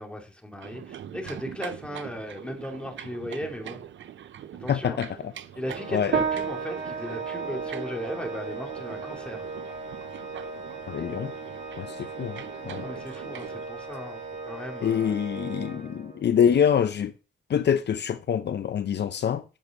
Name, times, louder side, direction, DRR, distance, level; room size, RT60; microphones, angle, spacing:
voice 1, 0.0-3.8 4.6-5.0 5.5-9.5 12.8-15.2, equal, 5° left, 2.7 m, -37 dB
sound 1, 0.6-13.7, right 10 dB, 90° right, 0.6 m, -43 dB
voice 2, 4.7-5.3 5.9-6.1 10.9-11.3 11.8-12.9 14.8-17.1 17.5-19.4, left 8 dB, 65° left, 0.6 m, -25 dB
Organ, 5.6-16.4, right 3 dB, 40° right, 5.3 m, -39 dB
sound 2, 6.1-15.8, right 7 dB, 65° right, 1.2 m, -36 dB
8.9 x 6.7 x 5.3 m
cardioid pair, 100°, 19 cm